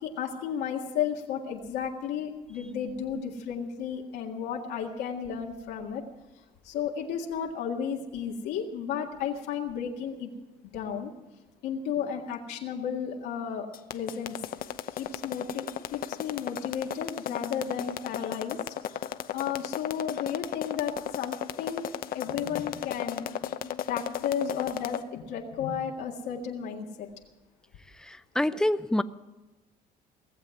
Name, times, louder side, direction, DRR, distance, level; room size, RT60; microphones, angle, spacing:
voice 1, 0.0-6.0 6.6-10.3 10.7-11.1 11.6-14.4 14.9-18.6 18.9-21.8 22.1-23.3 23.9-27.1, left 7 dB, 85° left, 0 dB, 1.9 m, -33 dB
sound 1, 13.7-25.0, left 11 dB, 60° left, 0.8 m, -34 dB
voice 2, 28.0-29.0, left 1 dB, 5° left, 13 dB, 0.5 m, -26 dB
18.5 x 7.5 x 9.6 m, 1.1 s
cardioid pair, 110°, 17 cm